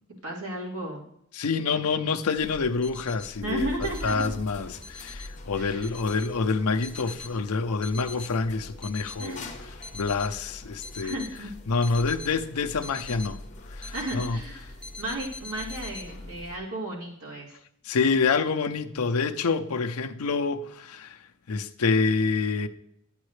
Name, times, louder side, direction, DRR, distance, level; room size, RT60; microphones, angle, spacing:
voice 1, 0.2-1.0 3.4-4.3 5.6-5.9 9.2-9.5 11.0-11.5 13.9-17.5, right 1 dB, 80° right, 2.7 m, -34 dB
voice 2, 1.3-9.4 9.9-11.2 11.7-13.4 13.7-14.4 17.8-21.2 21.5-22.7, left 4 dB, 90° left, 0.6 m, -27 dB
sound 1, 2.3-16.6, left 1 dB, 35° left, 1.0 m, -43 dB
sound 2, 2.8-3.3 3.8-4.3 4.8-5.3 5.8-6.3 6.8-7.3 7.8-8.3 8.8-9.3 9.8-10.3 10.8-11.3 11.8-12.3 12.8-13.3 13.8-14.3 14.8-16.0, left 4 dB, 5° left, 0.5 m, -42 dB
10.5 x 9.0 x 3.2 m
head